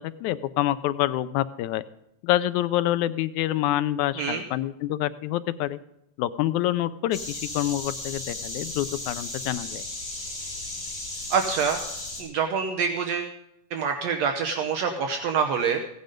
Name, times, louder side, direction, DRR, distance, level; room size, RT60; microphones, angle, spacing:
voice 1, 0.0-1.8 2.2-5.8 6.2-9.8, left 14 dB, 85° left, 14 dB, 2.0 m, -27 dB
sound 1, 7.1-12.2, left 2 dB, 35° left, 5.7 m, -35 dB
voice 2, 11.3-11.8 12.2-13.3 13.7-15.8, right 6 dB, 70° right, 4 dB, 2.0 m, -26 dB
16.0 x 9.6 x 5.2 m, 0.83 s
omnidirectional pair, 3.3 m